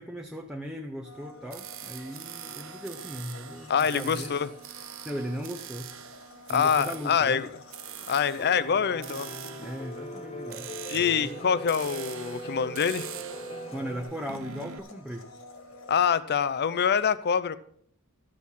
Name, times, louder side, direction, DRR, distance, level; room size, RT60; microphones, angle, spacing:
voice 1, 0.0-4.4 5.0-5.9 6.5-7.4 9.6-10.7 10.9-11.4 13.7-15.2, equal, 5° right, 0.6 m, -37 dB
Domestic sounds home sounds, 1.0-16.2, left 2 dB, 70° left, 1.9 m, -50 dB
sound 1, 1.5-14.8, right 10 dB, 65° right, 0.7 m, -44 dB
voice 2, 3.7-4.5 6.5-7.5 8.1-9.3 10.9-13.1 15.9-17.6, left 7 dB, 50° left, 0.5 m, -25 dB
Piano, 8.4-14.0, equal, 30° left, 1.1 m, -40 dB
13.0 x 6.4 x 5.6 m
head